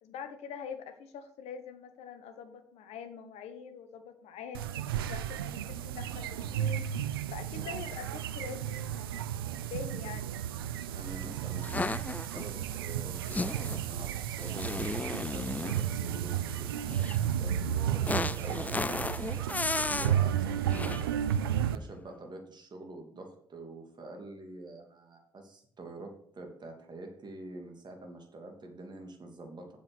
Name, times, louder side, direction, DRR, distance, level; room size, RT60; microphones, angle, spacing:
voice 1, 0.0-6.9 7.3-10.4, left 7 dB, 65° left, 8 dB, 1.3 m, -44 dB
sound 1, 4.5-21.8, right 10 dB, 85° right, 0.4 m, -33 dB
voice 2, 10.9-18.6 19.5-29.7, right 2 dB, 40° right, 3 dB, 2.8 m, -47 dB
sound 2, 11.6-12.4 13.3-13.8 14.4-15.9 16.9-17.2 18.1-20.2 20.7-21.1, left 3 dB, 15° left, 0.3 m, -34 dB
7.9 x 7.2 x 6.2 m, 0.64 s
hypercardioid pair, 45°, 12 cm